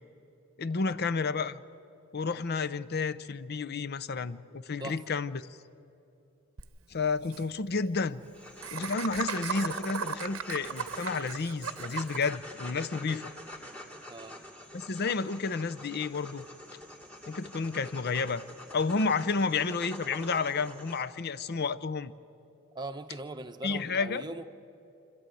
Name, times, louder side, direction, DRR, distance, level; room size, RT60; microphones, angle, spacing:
voice 1, 0.6-1.6 2.1-5.4 6.9-8.2 8.7-13.3 14.7-16.5 17.3-18.4 18.7-22.1 23.6-24.2, left 4 dB, 50° left, 13 dB, 0.6 m, -31 dB
Laughter, 6.6-6.7 6.9-7.0 7.2-7.4 8.6-12.3, right 7 dB, 85° right, 0.8 m, -36 dB
sound 1, 8.2-21.0, left 1 dB, 5° left, 2.4 m, -46 dB
voice 2, 14.1-14.4 22.7-24.4, right 2 dB, 20° right, 6 dB, 0.9 m, -40 dB
28.5 x 12.5 x 9.2 m, 2.8 s
head